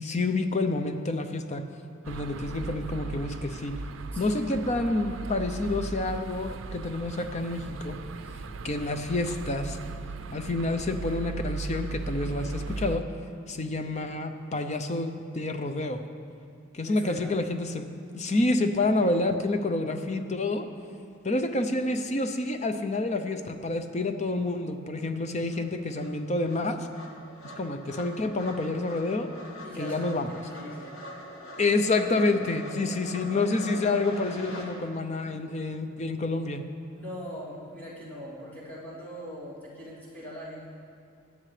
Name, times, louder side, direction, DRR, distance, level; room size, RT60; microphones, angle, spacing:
voice 1, 0.0-1.6 2.1-3.7 4.2-8.0 8.6-9.8 10.3-13.0 13.5-16.0 16.7-17.8 18.1-20.7 21.2-26.9 27.6-29.3 29.8-30.3 31.6-36.6, left 2 dB, 35° left, 7 dB, 0.6 m, -28 dB
sound 1, 2.0-13.0, right 3 dB, 75° right, 0.5 m, -37 dB
voice 2, 16.8-17.3 29.6-30.9 36.9-40.7, equal, 10° left, -10 dB, 2.9 m, -41 dB
sound 2, 24.6-24.7 25.0-34.7, equal, 80° left, 1.9 m, -44 dB
17.5 x 10.5 x 3.3 m, 2.5 s
head